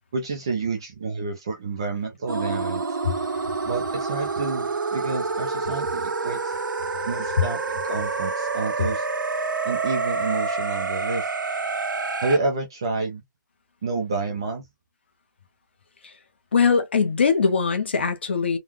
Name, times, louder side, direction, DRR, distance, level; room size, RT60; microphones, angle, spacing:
voice 1, 0.1-3.0 3.6-6.5 7.1-9.1 9.6-11.3 12.2-13.2 13.8-14.6, right 3 dB, 15° right, 0.4 m, -29 dB
sound 1, 2.3-12.4, right 4 dB, 75° right, 1.1 m, -28 dB
voice 2, 16.5-18.6, left 5 dB, 35° left, 0.8 m, -21 dB
3.7 x 2.2 x 2.9 m
hypercardioid pair, 175°, 11 cm